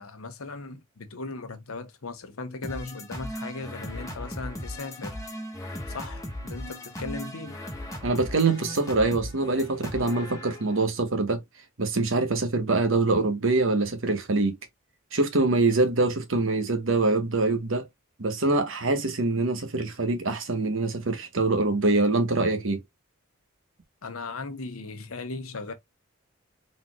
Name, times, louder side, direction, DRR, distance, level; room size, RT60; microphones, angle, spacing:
voice 1, 0.0-5.2 5.9-7.6 24.0-25.7, left 3 dB, 80° left, 1.0 m, -37 dB
sound 1, 2.6-10.8, left 1 dB, 15° left, 1.2 m, -37 dB
voice 2, 8.0-11.4 11.8-14.6 15.1-17.9 18.2-22.8, right 3 dB, 65° right, 1.1 m, -24 dB
4.1 x 4.0 x 2.3 m
head